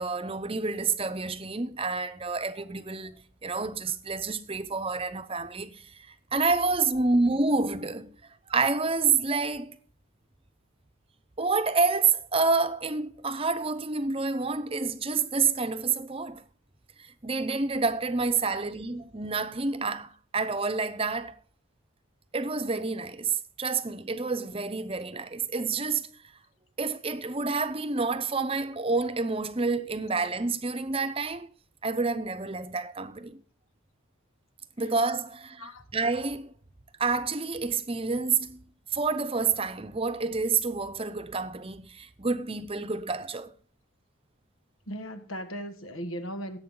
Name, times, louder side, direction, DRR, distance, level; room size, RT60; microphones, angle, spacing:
voice 1, 0.0-8.1 8.5-9.8 11.4-16.4 17.2-21.3 22.3-26.1 26.8-31.5 31.8-33.4 34.8-36.5 37.0-38.6 38.9-43.5, right 4 dB, 25° right, 0.7 m, -28 dB
voice 2, 44.9-46.6, equal, 85° left, 1.8 m, -37 dB
17.0 x 8.1 x 3.8 m
head